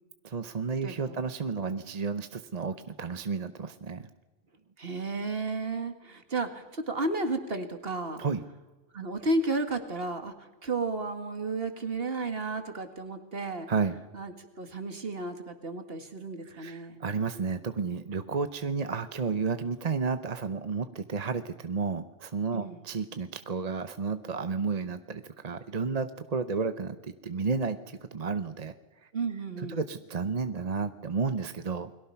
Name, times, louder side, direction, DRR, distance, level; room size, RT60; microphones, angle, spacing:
voice 1, 0.2-4.1 8.2-8.4 13.7-14.0 16.4-28.7 29.0-29.1 29.6-31.9, right 4 dB, 40° right, 10 dB, 0.9 m, -32 dB
voice 2, 0.8-1.2 4.8-8.2 8.9-13.7 14.1-17.0 22.5-22.8 29.1-29.8, right 3 dB, 55° right, 7 dB, 2.2 m, -33 dB
29.5 x 22.0 x 5.8 m, 1.1 s
omnidirectional pair, 1.2 m